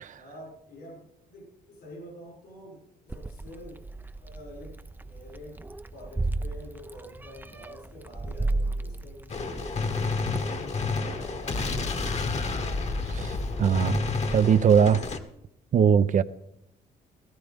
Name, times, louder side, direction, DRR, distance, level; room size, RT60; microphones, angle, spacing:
voice 1, 0.2-1.0 1.3-3.8 4.2-5.6 5.9-12.1, left 1 dB, 80° left, 6.0 m, -47 dB
Meow, 3.1-14.4, right 2 dB, 10° right, 0.5 m, -36 dB
Gunshot gunfire, 9.3-15.2, left 3 dB, 45° left, 1.4 m, -30 dB
voice 2, 13.6-14.0 14.3-15.0 15.7-16.2, right 7 dB, 55° right, 0.6 m, -20 dB
17.0 x 14.0 x 3.6 m
cardioid pair, 75°, 16 cm